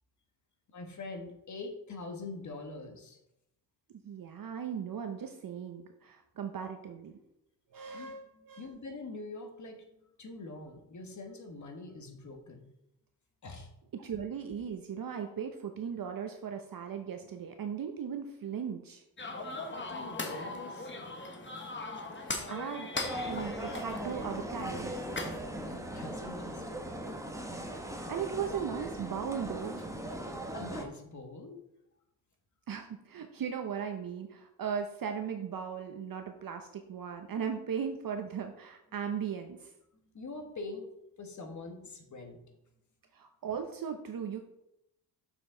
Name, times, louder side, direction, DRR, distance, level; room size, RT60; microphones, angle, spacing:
voice 1, 0.7-3.2 7.9-12.7 13.4-13.7 19.7-20.9 25.6-27.0 30.5-31.6 38.9-39.1 39.9-40.9 41.2-42.6, left 3 dB, 45° left, 5 dB, 1.4 m, -44 dB
voice 2, 4.0-7.1 7.7-8.7 13.9-19.0 22.2-22.9 23.2-25.0 27.8-29.8 32.7-39.7 43.1-44.4, right 7 dB, 55° right, 5 dB, 0.7 m, -38 dB
sound 1, 19.2-25.4, left 2 dB, 25° left, 1.1 m, -39 dB
sound 2, 22.9-30.8, right 1 dB, 5° right, 0.9 m, -39 dB
6.9 x 6.1 x 3.8 m, 0.84 s
cardioid pair, 110°, 42 cm